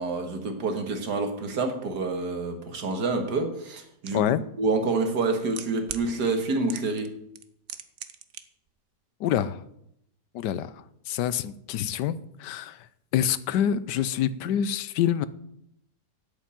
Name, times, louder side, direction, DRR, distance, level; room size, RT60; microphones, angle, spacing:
voice 1, 0.0-4.2 4.6-7.1, right 3 dB, 75° right, 5 dB, 2.2 m, -27 dB
voice 2, 4.1-4.4 9.2-9.6 10.3-10.7 11.1-12.8 13.1-15.3, left 9 dB, 90° left, 16 dB, 1.3 m, -26 dB
sound 1, 4.1-4.2 5.1-6.1 6.7-7.1 7.3-8.4 8.7-8.8, right 9 dB, 55° right, 1.0 m, -37 dB
8.1 x 8.1 x 8.9 m, 0.76 s
omnidirectional pair, 1.8 m